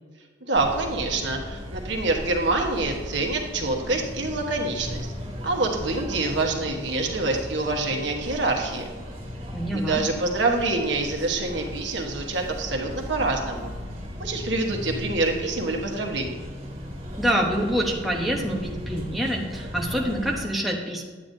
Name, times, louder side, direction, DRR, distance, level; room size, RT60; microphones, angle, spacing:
sound 1, 0.5-20.4, equal, 30° right, 1.9 m, -36 dB
voice 1, 0.5-5.1 5.4-8.9 9.7-13.7 14.2-16.3, right 2 dB, 65° right, 2 dB, 1.2 m, -26 dB
voice 2, 9.5-10.0 17.2-21.0, equal, ahead, -3 dB, 1.0 m, -26 dB
9.6 x 9.0 x 2.7 m, 1.4 s
head